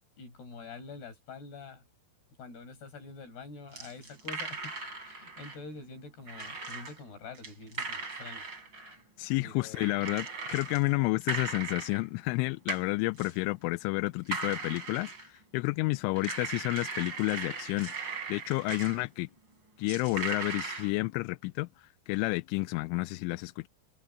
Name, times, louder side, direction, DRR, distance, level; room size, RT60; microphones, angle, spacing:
voice 1, 0.2-1.8 2.4-4.7 5.0-8.5 9.4-10.1 10.8-11.1, left 4 dB, 55° left, 8.1 m, -46 dB
sound 1, 3.7-5.6 6.3-7.0 7.3-9.0 9.7-10.9 11.2-12.0 12.7-12.9 13.2-13.4 14.3-15.4 16.1-19.0 19.9-20.9, right 4 dB, 25° right, 4.5 m, -38 dB
voice 2, 9.2-19.3 19.8-23.7, left 25 dB, 85° left, 3.0 m, -31 dB
omnidirectional pair, 5.5 m